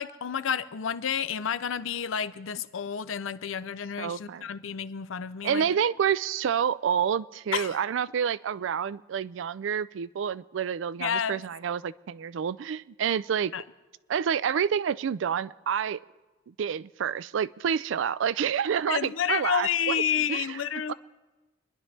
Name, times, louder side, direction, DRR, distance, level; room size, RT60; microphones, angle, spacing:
voice 1, 0.0-5.7 7.5-7.8 11.0-11.4 13.5-13.6 18.9-20.9, left 8 dB, 85° left, 13 dB, 0.5 m, -30 dB
voice 2, 4.0-4.5 5.4-13.5 14.1-16.0 16.5-20.0 20.3-20.6 20.9-21.0, right 8 dB, 70° right, 18 dB, 0.3 m, -28 dB
28.0 x 11.0 x 3.3 m, 1.2 s
head